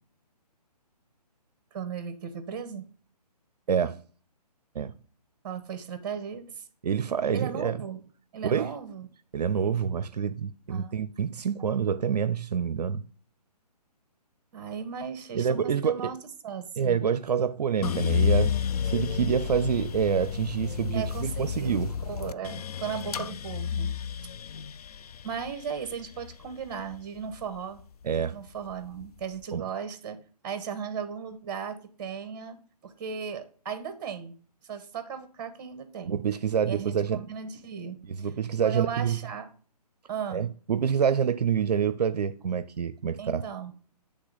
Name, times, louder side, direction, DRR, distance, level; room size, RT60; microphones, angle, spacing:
voice 1, 1.7-2.9 5.4-6.7 7.3-8.1 8.3-9.1 10.7-11.0 14.5-16.2 16.4-17.0 20.9-23.9 25.2-27.8 28.2-34.3 34.6-36.2 36.6-38.3 38.6-39.5 40.1-40.5 43.2-43.7, right 7 dB, 30° right, 0.9 m, -36 dB
voice 2, 3.7-4.0 4.8-4.9 6.8-7.8 8.4-8.7 9.3-13.0 15.3-16.1 16.8-18.5 18.8-22.0 28.0-28.3 29.5-29.6 36.0-37.2 38.0-39.2 40.3-43.4, right 7 dB, 75° right, 0.5 m, -27 dB
sound 1, 17.8-28.0 28.5-29.3, left 7 dB, 65° left, 0.4 m, -31 dB
8.1 x 3.3 x 3.9 m
hypercardioid pair, 150°, 21 cm